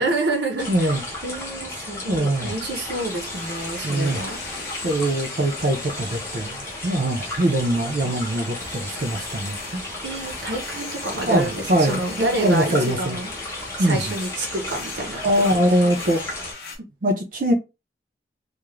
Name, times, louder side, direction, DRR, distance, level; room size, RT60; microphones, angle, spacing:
voice 1, 0.0-4.4 10.0-13.3 13.8-16.0, right 2 dB, 85° right, 0.8 m, -28 dB
sound 1, 0.6-16.5, left 1 dB, 15° left, 0.6 m, -34 dB
voice 2, 0.7-1.0 2.1-2.5 3.8-4.2 4.8-9.8 11.3-13.2 13.8-14.0 15.2-16.2 17.0-17.5, right 1 dB, 50° right, 0.4 m, -22 dB
sound 2, 2.4-16.8, left 4 dB, 60° left, 0.7 m, -40 dB
2.4 x 2.0 x 3.0 m
head